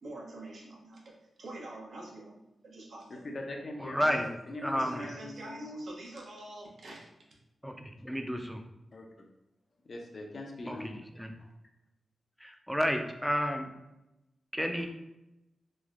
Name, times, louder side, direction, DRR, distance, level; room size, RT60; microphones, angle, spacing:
voice 1, 0.0-1.1 1.4-2.4 2.6-3.2 4.1-4.2 4.7-7.1, right 2 dB, 70° right, -2 dB, 0.7 m, -45 dB
voice 2, 3.1-5.8 8.9-9.3 9.8-10.9 11.4-11.5, left 1 dB, 60° left, 2 dB, 0.5 m, -42 dB
voice 3, 3.8-4.3 4.6-5.0 7.6-8.6 10.7-11.3 12.4-13.7 14.5-14.9, equal, ahead, 4 dB, 0.4 m, -31 dB
3.1 x 2.0 x 2.4 m, 0.92 s
cardioid pair, 50°, 0 cm